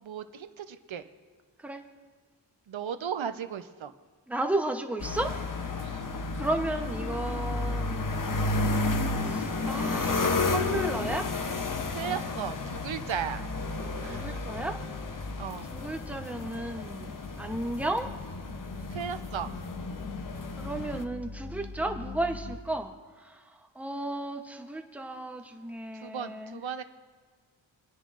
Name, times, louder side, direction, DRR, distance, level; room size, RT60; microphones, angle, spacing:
voice 1, 0.0-1.0 2.7-3.9 5.8-6.2 11.9-13.4 13.9-14.4 15.4-15.7 18.9-19.5 25.9-26.8, right 8 dB, 75° right, 9 dB, 0.8 m, -36 dB
voice 2, 4.3-5.3 6.3-8.4 9.2-11.3 14.1-14.8 15.7-18.1 20.6-26.6, right 1 dB, 5° right, 4 dB, 0.8 m, -34 dB
sound 1, 5.0-21.0, left 3 dB, 45° left, 0.9 m, -32 dB
sound 2, 13.8-22.6, left 3 dB, 75° left, 2.0 m, -45 dB
27.0 x 10.0 x 2.5 m, 1.5 s
wide cardioid pair, 95°, 47 cm